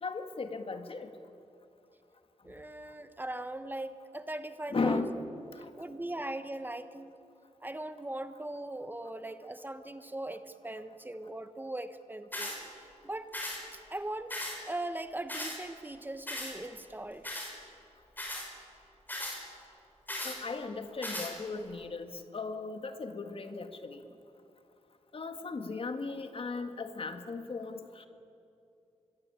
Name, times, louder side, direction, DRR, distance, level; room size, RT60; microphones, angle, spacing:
voice 1, 0.0-1.1 4.7-5.1 5.5-5.7 20.2-24.0 25.1-28.1, left 4 dB, 50° left, 7 dB, 1.9 m, -36 dB
voice 2, 2.4-5.0 5.8-7.1 7.6-13.3 13.7-17.3, right 1 dB, 15° right, 10 dB, 1.1 m, -40 dB
sound 1, 12.3-12.6 13.3-13.6 14.3-14.6 15.3-15.6 16.3-16.5 17.2-17.5 18.2-18.5 19.1-19.4 20.1-20.4 21.0-21.3, left 1 dB, 15° left, 5.9 m, -37 dB
26.0 x 21.5 x 8.9 m, 2.7 s
wide cardioid pair, 100°, 12 cm